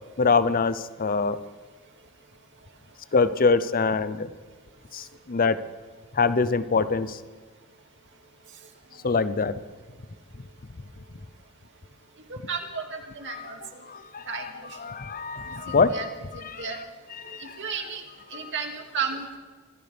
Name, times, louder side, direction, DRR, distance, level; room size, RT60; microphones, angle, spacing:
voice 1, 0.2-1.4 3.1-4.3 4.9-5.6 6.1-7.2 9.0-9.5 13.3-13.5 13.9-16.8 17.1-17.7 18.4-18.5, left 4 dB, 40° left, 14 dB, 0.7 m, -25 dB
voice 2, 12.5-12.8 13.2-13.6 14.3-14.4 15.7-16.1 16.6-16.8 17.4-18.0 18.3-19.4, right 6 dB, 55° right, 3 dB, 2.3 m, -32 dB
26.0 x 15.0 x 3.5 m, 1.4 s
head